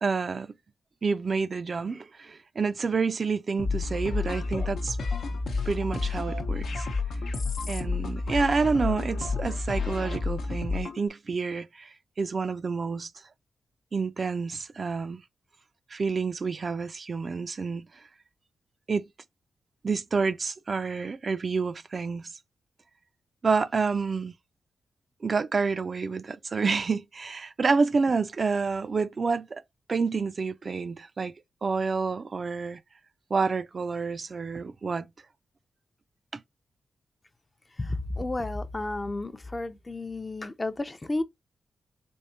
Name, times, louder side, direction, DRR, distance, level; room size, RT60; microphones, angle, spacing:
voice 1, 0.0-0.5 1.0-5.0 5.7-6.8 7.7-11.9 12.2-13.1 13.9-15.2 15.9-17.9 18.9-19.1 19.8-22.3 23.4-24.3 25.2-29.6 29.9-31.3 31.6-32.8 33.3-35.1 36.3-36.4, right 4 dB, 50° right, 0.3 m, -28 dB
sound 1, 3.6-11.0, left 3 dB, 85° left, 0.8 m, -30 dB
voice 2, 37.7-41.2, left 2 dB, 30° left, 0.5 m, -32 dB
3.5 x 3.5 x 2.7 m
cardioid pair, 55°, 0 cm